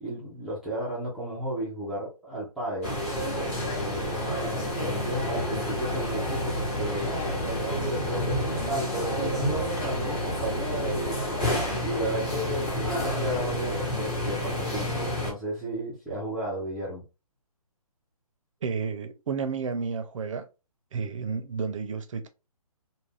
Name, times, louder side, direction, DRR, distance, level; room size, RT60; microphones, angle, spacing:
voice 1, 0.0-3.0 3.7-11.2 11.8-17.0, right 1 dB, ahead, 0.4 m, -34 dB
sound 1, 2.8-15.3, equal, 25° left, 1.0 m, -29 dB
voice 2, 18.6-20.5 20.9-22.3, right 5 dB, 55° right, 0.5 m, -31 dB
2.4 x 2.2 x 3.2 m
hypercardioid pair, 155°, 19 cm